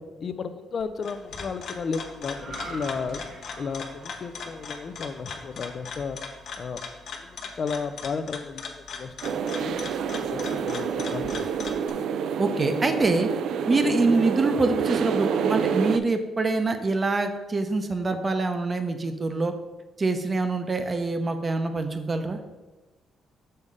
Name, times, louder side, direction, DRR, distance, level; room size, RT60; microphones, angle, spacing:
voice 1, 0.2-3.2 3.6-6.2 6.6-6.8 7.1-8.6 8.9-9.1 9.6-9.8 10.2-11.5, left 5 dB, 50° left, 11 dB, 0.5 m, -33 dB
sound 1, 0.8-11.9, left 5 dB, 65° left, 0.9 m, -39 dB
sound 2, 2.3-5.8 6.2-6.5, right 2 dB, 55° right, 1.0 m, -44 dB
sound 3, 9.2-16.0, right 7 dB, 75° right, 0.4 m, -27 dB
voice 2, 12.4-13.3 13.7-19.5 20.0-22.4, right 3 dB, 30° right, 7 dB, 0.7 m, -25 dB
6.6 x 3.6 x 5.3 m, 1.1 s
cardioid pair, 90°, 0 cm